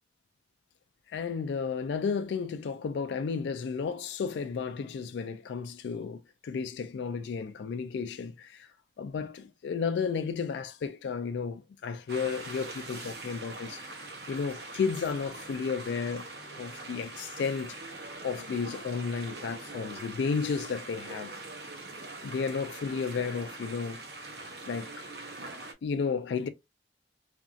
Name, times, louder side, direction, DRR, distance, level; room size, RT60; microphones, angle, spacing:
voice 1, 1.1-8.7 9.0-14.0 14.3-16.3 16.6-21.4 22.2-24.0 24.7-25.1 25.8-26.5, left 5 dB, 80° left, 0.3 m, -33 dB
sound 1, 12.1-25.7, right 2 dB, 65° right, 0.8 m, -43 dB
2.9 x 2.6 x 2.4 m
head